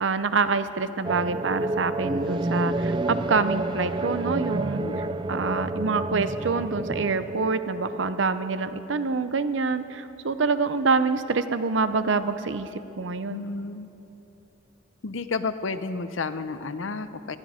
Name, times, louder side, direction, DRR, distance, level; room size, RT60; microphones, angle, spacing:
voice 1, 0.0-4.8 5.3-13.4, right 4 dB, 70° right, 12 dB, 0.7 m, -26 dB
sound 1, 1.0-9.0, right 2 dB, 25° right, 0.4 m, -29 dB
voice 2, 4.8-5.2 13.3-13.9 15.0-17.4, left 4 dB, 80° left, 11 dB, 0.7 m, -31 dB
19.0 x 14.5 x 5.0 m, 3.0 s
head